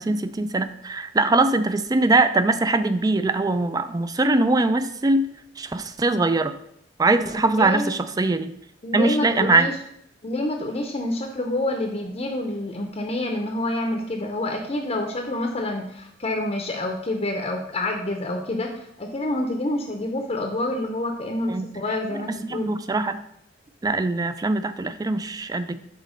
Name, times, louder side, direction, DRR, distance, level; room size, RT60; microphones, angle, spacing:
voice 1, 0.0-5.3 5.6-6.5 7.0-8.5 8.9-9.7 21.5-21.7 22.3-23.2 23.8-25.8, right 2 dB, 20° right, 11 dB, 0.3 m, -22 dB
voice 2, 7.5-7.9 8.8-9.7 10.2-22.7, left 1 dB, 35° left, 2 dB, 0.7 m, -27 dB
6.2 x 4.1 x 5.1 m, 0.74 s
head